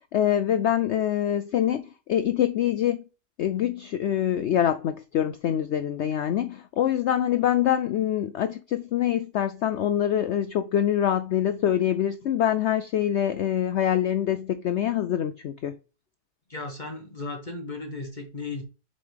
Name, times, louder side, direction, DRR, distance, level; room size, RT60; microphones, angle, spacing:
voice 1, 0.0-3.0 3.4-15.7, left 10 dB, 90° left, 0.6 m, -25 dB
voice 2, 16.5-18.6, left 3 dB, 30° left, 1.2 m, -35 dB
6.9 x 5.3 x 3.4 m
omnidirectional pair, 1.7 m